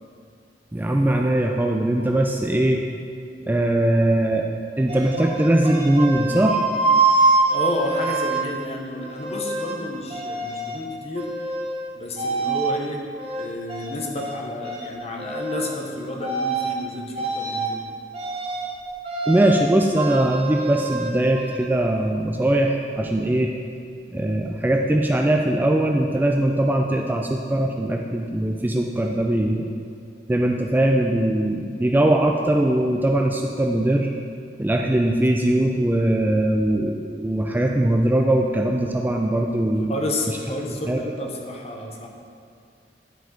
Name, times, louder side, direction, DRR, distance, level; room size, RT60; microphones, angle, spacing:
voice 1, 0.7-2.8 3.5-4.4 4.8-6.6 19.3-23.5 24.1-29.7 30.3-34.1 34.6-40.0 40.9-41.1, right 1 dB, 10° right, 1 dB, 0.3 m, -21 dB
sound 1, 4.9-8.4 9.0-9.8 10.1-10.8 11.2-11.8 12.2-12.7 13.2-14.4 14.6-14.9 15.2-15.8 16.2-16.8 17.1-17.7 18.1-18.7 19.0-19.6 20.0-21.6, right 3 dB, 35° right, 1.0 m, -25 dB
voice 2, 7.5-11.3 12.0-13.0 13.4-17.8 39.9-42.1, left 1 dB, 35° left, 1 dB, 0.9 m, -30 dB
10.0 x 5.4 x 3.8 m, 2.3 s
head